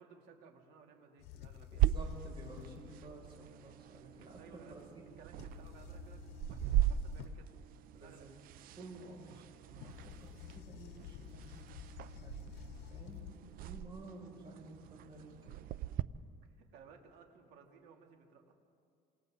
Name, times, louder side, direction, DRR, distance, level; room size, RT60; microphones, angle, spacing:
voice 1, 0.0-1.9 4.4-4.7 5.2-6.2 6.5-7.5 7.9-8.3 16.4-18.5, right 6 dB, 75° right, 2 dB, 3.1 m, -59 dB
sound 1, 1.2-3.3 5.4-7.6 9.7-13.4, left 12 dB, 85° left, 0.8 m, -51 dB
voice 2, 1.7-5.0 8.0-8.3 8.7-12.3 12.9-15.5, right 2 dB, 30° right, -1 dB, 6.6 m, -52 dB
sound 2, 1.8-16.0, right 11 dB, 60° right, 0.6 m, -39 dB
28.0 x 27.0 x 4.0 m, 2.3 s
cardioid pair, 140°, 17 cm